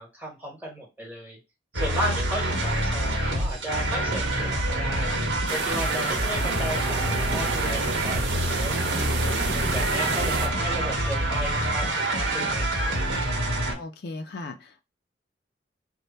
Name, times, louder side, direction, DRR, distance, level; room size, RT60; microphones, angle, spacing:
voice 1, 0.0-1.4 1.7-5.1 5.5-9.3 9.7-12.9, right 1 dB, 10° right, 1.1 m, -35 dB
sound 1, 1.7-13.7, right 1 dB, 80° right, 1.1 m, -26 dB
sound 2, 5.5-10.5, right 5 dB, 65° right, 0.5 m, -32 dB
voice 2, 13.7-14.8, left 2 dB, 60° left, 0.4 m, -37 dB
3.2 x 2.1 x 4.0 m
head